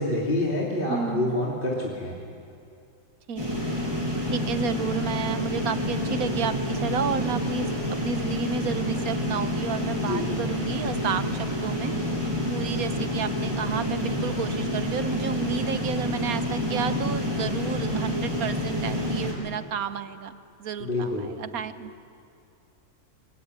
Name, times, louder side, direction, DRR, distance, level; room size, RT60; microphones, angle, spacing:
voice 1, 0.0-2.2 10.0-10.3 20.8-21.3, left 1 dB, 40° left, -3 dB, 3.2 m, -27 dB
voice 2, 0.9-1.4 3.3-3.8 4.3-7.7 8.0-11.9 12.5-22.0, right 7 dB, 80° right, 12 dB, 1.5 m, -32 dB
sound 1, 3.4-19.3, equal, 15° right, 8.1 m, -28 dB
25.0 x 24.0 x 9.8 m, 2.5 s
omnidirectional pair, 1.5 m